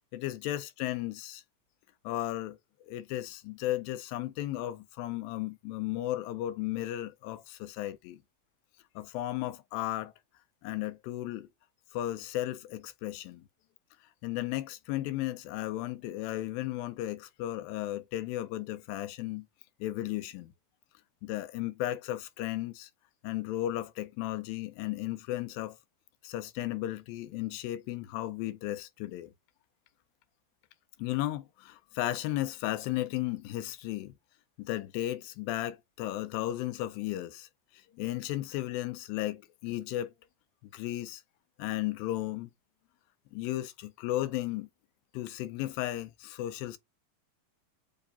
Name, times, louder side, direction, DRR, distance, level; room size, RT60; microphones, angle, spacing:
voice 1, 0.1-1.4 2.0-2.6 2.9-8.2 9.0-10.1 10.6-11.5 11.9-13.5 14.2-19.5 19.8-20.5 21.2-22.9 23.2-25.8 26.2-29.3 31.0-34.1 34.6-37.5 37.7-40.1 40.7-41.2 41.6-42.5 43.3-44.7 45.1-46.8, left 15 dB, 80° left, 2.2 m, -35 dB
6.9 x 2.7 x 2.6 m
omnidirectional pair, 4.3 m